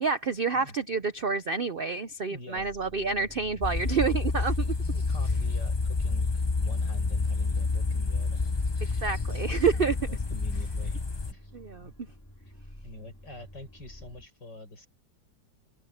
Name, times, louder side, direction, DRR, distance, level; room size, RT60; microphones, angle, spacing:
voice 1, 0.0-4.7 9.0-10.0 11.5-11.9, right 5 dB, 60° right, 0.5 m, -28 dB
voice 2, 2.3-2.7 3.9-4.0 4.8-9.1 9.8-11.5 11.8-11.9 12.4-12.5 12.8-14.9, left 1 dB, 70° left, 8.7 m, -46 dB
sound 1, 2.6-14.3, equal, 10° left, 3.2 m, -50 dB
sound 2, 3.6-11.3, left 3 dB, 45° left, 0.3 m, -28 dB
open air
omnidirectional pair, 2.0 m